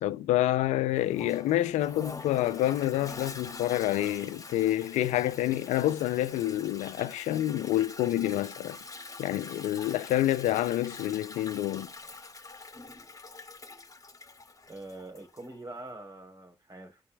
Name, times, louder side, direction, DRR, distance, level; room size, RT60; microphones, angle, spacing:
voice 1, 0.0-8.8 9.2-11.9, left 14 dB, 80° left, 0.4 m, -28 dB
Toilet flush, 1.0-15.6, left 3 dB, 30° left, 2.1 m, -45 dB
voice 2, 14.7-17.0, right 2 dB, 30° right, 3.8 m, -44 dB
10.0 x 5.4 x 2.3 m
hypercardioid pair, 40°, 12 cm